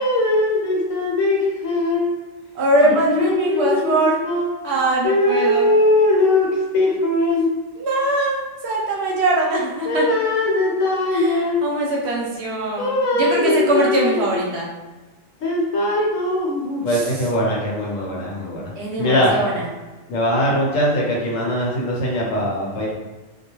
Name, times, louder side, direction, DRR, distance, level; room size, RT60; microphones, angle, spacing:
voice 1, 0.0-2.1 2.8-4.5 5.0-7.5 9.8-11.7 12.8-14.4 15.4-18.7 19.0-19.4 20.1-22.9, left 1 dB, 75° left, -3 dB, 1.1 m, -20 dB
voice 2, 2.5-4.2 4.6-5.7 7.7-10.0 11.1-14.7 16.9-17.1 18.8-19.7, right 1 dB, 60° right, -4 dB, 0.9 m, -22 dB
2.3 x 2.2 x 2.9 m, 1.2 s
omnidirectional pair, 1.4 m